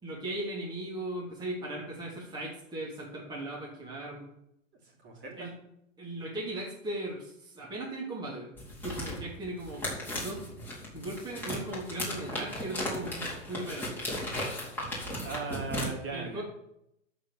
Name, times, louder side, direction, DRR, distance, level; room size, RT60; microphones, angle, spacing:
voice 1, 0.0-4.3 5.4-5.5 6.0-8.5 8.8-10.4 10.9-14.1 16.1-16.4, right 1 dB, 10° right, -6 dB, 3.1 m, -38 dB
voice 2, 5.0-5.5 15.2-16.4, right 4 dB, 30° right, -1 dB, 3.8 m, -38 dB
sound 1, 8.6-15.9, left 1 dB, 5° left, 4.2 m, -36 dB
13.0 x 5.3 x 7.3 m, 0.79 s
hypercardioid pair, 125°, 38 cm